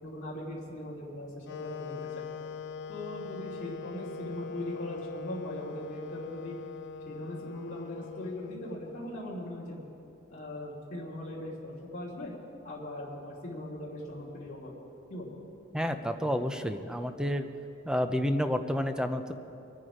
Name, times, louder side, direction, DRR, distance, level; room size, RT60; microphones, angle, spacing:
voice 1, 0.0-2.1 2.9-6.5 7.1-9.8 10.3-12.3 12.6-14.7 15.1-15.3, left 1 dB, 40° left, -8 dB, 2.9 m, -40 dB
Wind instrument woodwind instrument, 1.5-9.4, left 5 dB, 60° left, 0.4 m, -42 dB
voice 2, 15.7-17.5 17.8-19.3, equal, 5° right, 8 dB, 0.6 m, -30 dB
24.0 x 9.2 x 5.0 m, 2.8 s
head